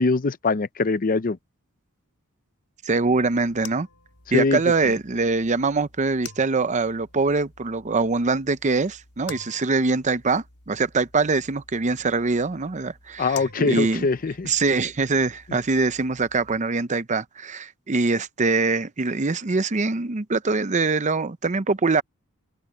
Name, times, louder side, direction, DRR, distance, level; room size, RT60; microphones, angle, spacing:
voice 1, 0.0-1.4 4.3-4.6 13.2-14.5, left 3 dB, 40° left, 0.6 m, -22 dB
voice 2, 2.8-3.9 4.3-14.0 14.4-22.0, right 3 dB, 35° right, 0.7 m, -23 dB
sound 1, 3.0-16.6, left 6 dB, 90° left, 3.5 m, -48 dB
open air
head